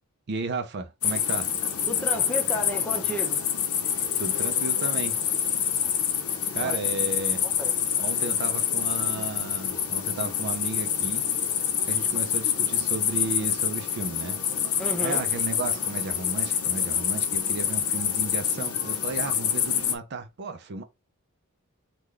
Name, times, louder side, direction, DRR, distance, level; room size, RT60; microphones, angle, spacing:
voice 1, 0.3-1.5 4.2-5.2 6.5-7.4 8.0-11.2 11.9-14.4 15.0-20.8, right 3 dB, 50° right, 0.5 m, -34 dB
sound 1, 1.0-19.9, left 8 dB, 75° left, 0.8 m, -26 dB
voice 2, 1.9-3.5 6.6-6.8 7.4-7.8 14.8-15.2, left 1 dB, 5° left, 0.7 m, -33 dB
3.8 x 2.2 x 3.2 m
head